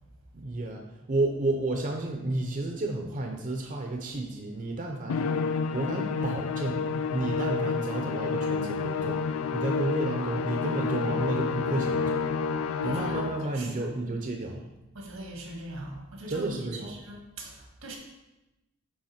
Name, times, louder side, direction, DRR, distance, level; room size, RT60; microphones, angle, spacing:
voice 1, 0.3-6.9 7.1-12.3 12.8-14.7 16.3-17.0, right 2 dB, 40° right, 2 dB, 0.6 m, -31 dB
Musical instrument, 5.1-13.6, left 5 dB, 80° left, 0.4 m, -29 dB
voice 2, 12.8-13.2 13.5-13.9 14.9-18.0, right 1 dB, 85° right, 1 dB, 1.7 m, -41 dB
9.7 x 3.5 x 4.3 m, 0.99 s
head